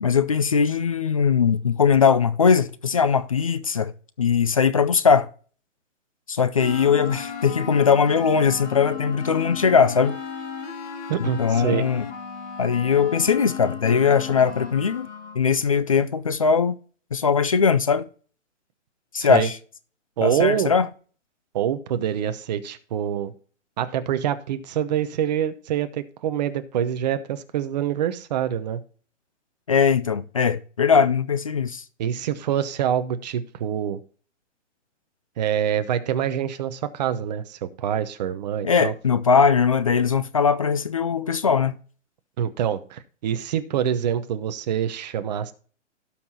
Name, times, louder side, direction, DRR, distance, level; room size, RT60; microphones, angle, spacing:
voice 1, 0.0-3.9 4.2-5.3 6.3-10.2 11.4-12.0 12.6-15.1 15.4-16.7 17.1-18.0 19.1-19.5 20.2-20.9 29.7-31.8 38.6-41.7, left 6 dB, 30° left, 0.4 m, -20 dB
sound 1, 6.6-15.4, left 7 dB, 70° left, 2.8 m, -35 dB
voice 2, 11.1-11.9 19.2-19.5 20.2-20.7 21.5-23.3 23.8-28.8 32.0-34.0 35.4-38.9 42.4-45.5, right 9 dB, 35° right, 0.9 m, -25 dB
17.0 x 5.8 x 2.8 m
hypercardioid pair, 155°, 37 cm